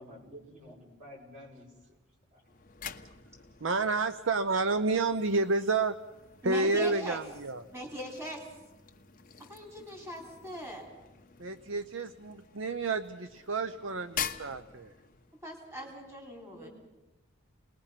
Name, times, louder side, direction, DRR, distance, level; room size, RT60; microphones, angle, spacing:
voice 1, 0.0-2.0 2.3-2.4 16.4-16.7, equal, 35° right, -2 dB, 6.8 m, -50 dB
sound 1, 2.4-15.4, left 8 dB, 40° left, 1.0 m, -46 dB
voice 2, 3.6-6.0 6.4-7.6 11.4-14.9, right 3 dB, 65° right, 10 dB, 0.7 m, -30 dB
voice 3, 6.4-7.2 7.7-8.4 9.5-10.9 15.4-16.7, equal, 15° right, 0 dB, 3.8 m, -40 dB
29.0 x 20.5 x 5.8 m, 1.0 s
head